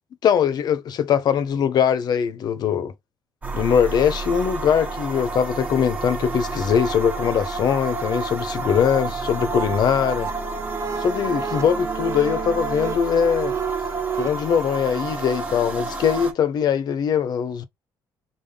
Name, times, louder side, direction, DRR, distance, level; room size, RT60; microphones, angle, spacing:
voice 1, 0.2-2.9 3.5-10.3 11.0-13.5 14.2-17.7, left 8 dB, 55° left, 0.7 m, -21 dB
sound 1, 3.4-16.3, right 3 dB, 20° right, 1.3 m, -30 dB
sound 2, 9.0-14.3, right 8 dB, 40° right, 0.5 m, -32 dB
3.7 x 3.6 x 3.4 m
cardioid pair, 135°, 8 cm